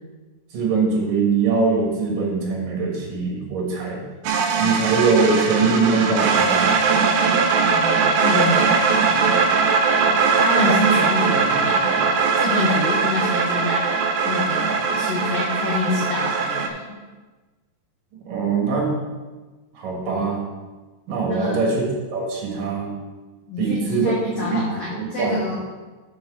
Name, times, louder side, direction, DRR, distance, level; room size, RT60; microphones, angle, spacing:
voice 1, 0.5-4.0 4.6-6.7 18.2-18.9 19.7-20.4 21.1-21.8 22.1-22.9 23.6-25.3, right 4 dB, 60° right, -2 dB, 3.0 m, -22 dB
sound 1, 4.2-16.7, right 5 dB, 80° right, 2.5 m, -20 dB
voice 2, 7.6-9.5 9.9-16.9 21.3-21.7 23.5-25.6, left 2 dB, 55° left, -6 dB, 1.7 m, -27 dB
6.7 x 6.1 x 6.1 m, 1.3 s
omnidirectional pair, 4.7 m